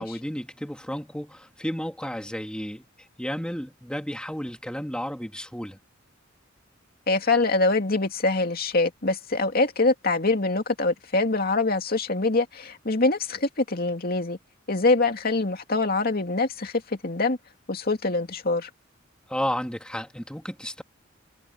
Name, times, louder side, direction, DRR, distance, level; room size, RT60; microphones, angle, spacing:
voice 1, 0.0-2.9 3.2-5.8 19.3-20.8, equal, 5° left, 2.9 m, -32 dB
voice 2, 7.1-14.4 14.7-17.4 17.7-18.7, left 3 dB, 50° left, 2.5 m, -24 dB
head